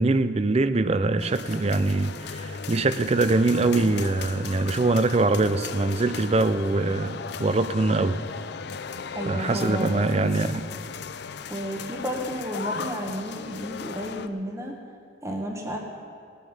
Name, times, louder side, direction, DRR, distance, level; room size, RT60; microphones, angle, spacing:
voice 1, 0.0-8.2 9.3-10.7, right 3 dB, 35° right, 12 dB, 0.4 m, -23 dB
sound 1, 1.2-14.3, left 6 dB, 60° left, 0.5 m, -37 dB
voice 2, 9.1-10.3 11.5-14.8 15.2-15.8, equal, 15° right, 1 dB, 1.1 m, -32 dB
18.5 x 9.2 x 5.5 m, 2.3 s
head